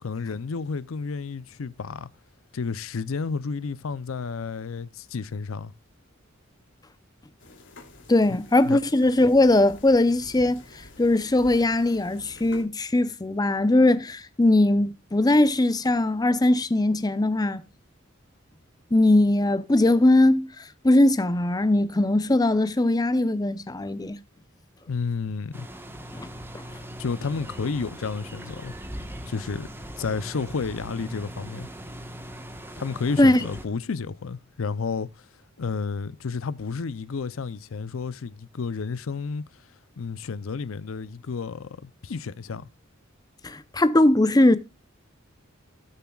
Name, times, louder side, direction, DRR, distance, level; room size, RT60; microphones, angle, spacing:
voice 1, 0.0-2.1 2.5-5.7 8.6-8.8 24.9-25.7 27.0-28.7 29.3-29.7 30.0-31.7 32.8-35.3 35.6-39.4 40.0-42.7, left 5 dB, 85° left, 0.6 m, -31 dB
sound 1, 7.4-12.6, left 2 dB, 65° left, 2.9 m, -48 dB
voice 2, 8.1-10.6 11.0-17.6 18.9-24.2 26.1-26.3 33.2-33.4 43.4-44.6, left 2 dB, 20° left, 0.6 m, -20 dB
sound 2, 25.5-33.7, equal, 10° right, 1.2 m, -40 dB
18.5 x 7.0 x 2.3 m
head